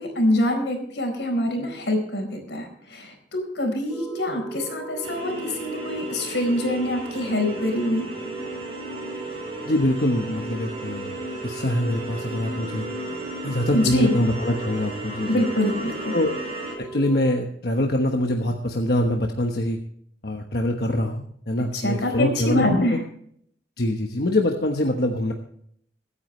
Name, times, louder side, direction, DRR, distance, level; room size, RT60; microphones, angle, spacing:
voice 1, 0.0-8.1 13.7-14.1 15.3-16.1 21.7-23.0, left 1 dB, 90° left, 3 dB, 4.3 m, -25 dB
sound 1, 3.9-17.4, right 4 dB, 5° right, 2.2 m, -37 dB
sound 2, 5.0-16.8, equal, 35° right, 6.4 m, -36 dB
voice 2, 9.7-12.9 13.4-15.3 16.1-16.3 16.8-19.8 20.2-22.8 23.8-25.3, left 1 dB, 60° left, 2 dB, 1.2 m, -24 dB
23.5 x 9.7 x 3.2 m, 0.66 s
head